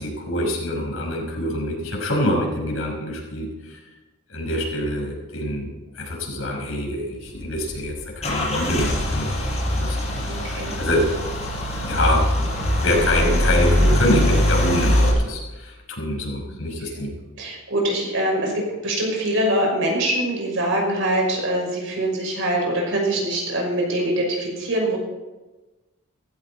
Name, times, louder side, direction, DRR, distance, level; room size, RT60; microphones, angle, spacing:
voice 1, 0.0-3.8 4.3-11.0 11.8-12.2 12.8-17.1, left 1 dB, 80° left, -1 dB, 5.6 m, -25 dB
Car / Engine starting / Idling, 7.3-15.1, left 1 dB, 30° left, 5.4 m, -22 dB
voice 2, 10.3-10.8 16.4-16.5 17.4-25.0, right 1 dB, 65° right, -1 dB, 5.9 m, -23 dB
16.0 x 15.5 x 4.3 m, 1.1 s
head